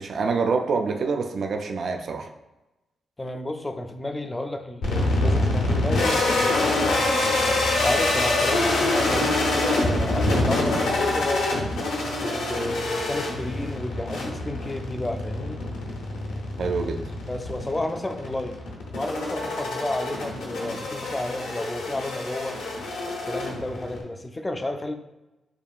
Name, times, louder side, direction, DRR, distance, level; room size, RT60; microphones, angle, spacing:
voice 1, 0.0-2.3 9.1-9.3 16.6-17.0, right 4 dB, 60° right, 4 dB, 0.3 m, -26 dB
voice 2, 3.2-7.0 7.8-11.7 12.2-15.6 17.3-18.6 18.9-22.6 23.2-24.9, left 1 dB, 20° left, 6 dB, 0.4 m, -31 dB
sound 1, 4.8-24.0, left 2 dB, 90° left, 0.7 m, -25 dB
5.3 x 2.3 x 2.4 m, 1.0 s
cardioid pair, 80°, 0 cm